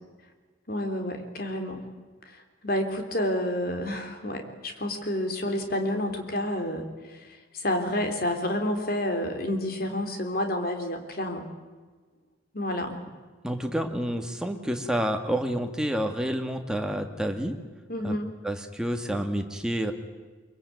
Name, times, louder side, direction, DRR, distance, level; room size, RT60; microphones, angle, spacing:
voice 1, 0.7-1.9 2.3-11.4 12.5-13.0 17.9-18.3, left 1 dB, 50° left, 5 dB, 3.6 m, -29 dB
voice 2, 13.4-17.6 18.0-18.1 18.4-19.9, equal, 5° right, 4 dB, 1.9 m, -29 dB
23.5 x 23.0 x 9.5 m, 1.4 s
head